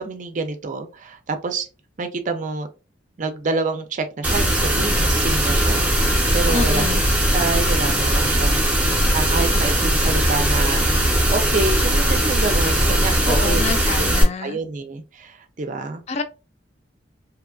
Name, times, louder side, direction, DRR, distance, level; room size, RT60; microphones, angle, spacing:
voice 1, 0.0-1.7 2.0-2.7 3.2-6.9 7.3-10.9 11.3-13.6 14.0-14.1 14.4-16.0, right 3 dB, 40° right, 0.5 m, -27 dB
sound 1, 4.2-14.2, right 1 dB, 10° right, 0.8 m, -19 dB
voice 2, 6.5-7.0 13.3-14.6 16.1-16.2, left 4 dB, 35° left, 0.4 m, -27 dB
2.8 x 2.4 x 2.3 m
head